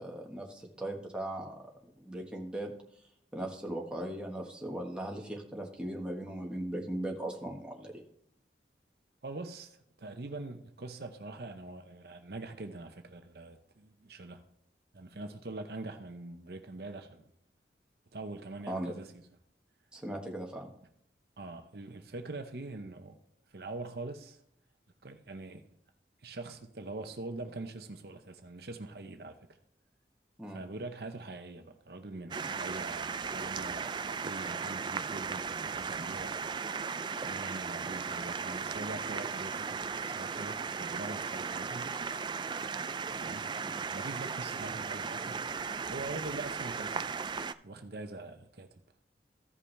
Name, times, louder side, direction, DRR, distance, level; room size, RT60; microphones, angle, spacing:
voice 1, 0.0-1.5 2.0-2.7 3.3-8.0 18.7-18.9 19.9-20.7 30.4-30.6 43.6-43.7, right 1 dB, 5° right, 1.3 m, -38 dB
voice 2, 9.2-14.4 14.9-17.2 18.1-19.1 21.4-23.2 23.5-24.4 25.0-25.6 26.2-29.4 30.5-36.3 37.2-42.0 43.2-43.4 43.9-45.5 45.9-48.7, right 2 dB, 60° right, 0.7 m, -43 dB
sound 1, 32.3-47.5, right 5 dB, 25° right, 0.3 m, -36 dB
15.0 x 5.5 x 3.2 m
head